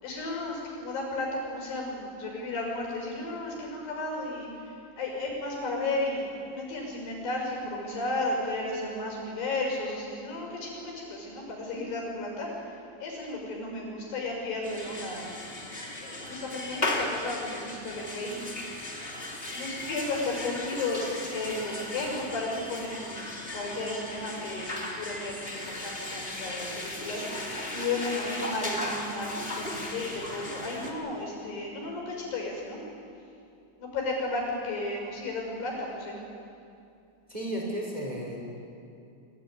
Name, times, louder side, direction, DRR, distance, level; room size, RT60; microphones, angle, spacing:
voice 1, 0.0-15.4 16.0-18.5 19.1-21.0 21.3-32.8 33.8-36.2, left 2 dB, 60° left, 0 dB, 7.5 m, -34 dB
sound 1, 14.6-30.9, left 1 dB, 15° left, 2.2 m, -36 dB
voice 2, 37.3-38.4, right 1 dB, 10° right, -2 dB, 4.5 m, -33 dB
25.0 x 16.5 x 9.7 m, 2.5 s
omnidirectional pair, 5.4 m